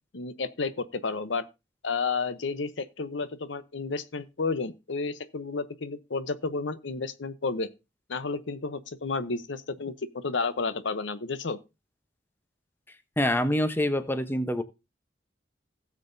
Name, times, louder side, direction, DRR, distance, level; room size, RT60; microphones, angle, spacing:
voice 1, 0.1-1.5 1.8-7.7 8.1-11.6, left 4 dB, 85° left, 0.8 m, -31 dB
voice 2, 13.2-14.6, left 1 dB, 10° left, 0.8 m, -25 dB
16.5 x 7.5 x 2.6 m
head